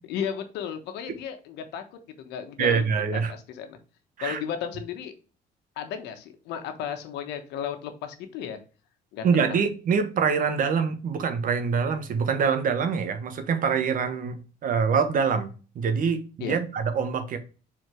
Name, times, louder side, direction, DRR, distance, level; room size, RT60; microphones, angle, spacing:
voice 1, 0.1-1.8 2.2-2.8 3.1-3.8 4.2-5.1 5.8-8.6 9.1-9.6 16.4-16.6, left 8 dB, 90° left, 1.2 m, -34 dB
voice 2, 2.6-3.3 4.2-4.4 9.2-15.5 15.7-17.4, right 6 dB, 55° right, 1.2 m, -25 dB
4.8 x 4.3 x 4.5 m
cardioid pair, 110°, 17 cm